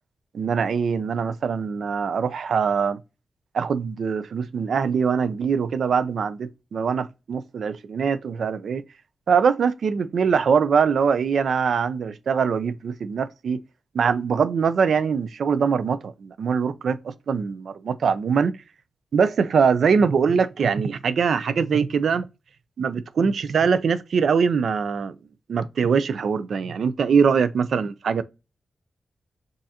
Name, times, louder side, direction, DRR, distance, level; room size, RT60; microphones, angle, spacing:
voice 1, 0.3-3.0 3.5-8.8 9.3-13.6 13.9-18.5 19.1-22.3 22.8-25.2 25.5-28.2, right 6 dB, 75° right, 0.4 m, -22 dB
6.3 x 2.5 x 2.8 m
wide cardioid pair, 150°, 0 cm